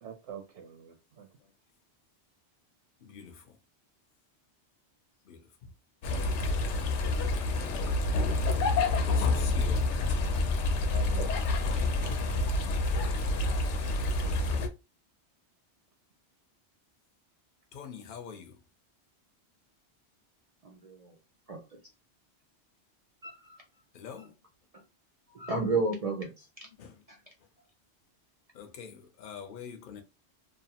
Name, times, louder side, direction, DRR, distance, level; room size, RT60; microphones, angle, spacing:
voice 1, 0.0-1.3 10.9-12.6, right 7 dB, 80° right, 0.9 m, -46 dB
voice 2, 3.0-3.6 5.2-5.7 8.8-10.3 13.4-13.5 17.7-18.6 23.9-24.3 26.7-27.5 28.5-30.0, left 7 dB, 55° left, 0.7 m, -46 dB
sound 1, 6.0-14.7, left 2 dB, 85° left, 0.9 m, -28 dB
voice 3, 20.6-21.2 21.5-21.8 23.2-23.6 24.7-24.8 25.3-26.5 27.1-27.2, right 3 dB, 50° right, 0.4 m, -33 dB
2.8 x 2.0 x 2.7 m
omnidirectional pair, 1.2 m